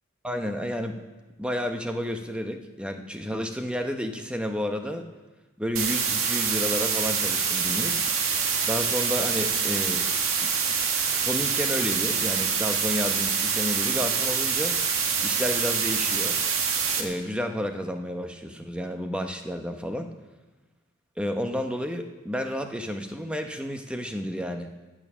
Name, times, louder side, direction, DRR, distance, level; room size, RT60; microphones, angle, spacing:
voice 1, 0.2-1.0 1.4-5.0 5.6-8.0 8.6-10.1 10.4-10.5 11.1-14.8 15.2-16.4 17.0-20.1 21.2-24.7, equal, 5° right, 5 dB, 0.9 m, -31 dB
sound 1, 5.8-17.0, right 6 dB, 85° right, 1.7 m, -25 dB
15.5 x 9.0 x 6.2 m, 1.2 s
head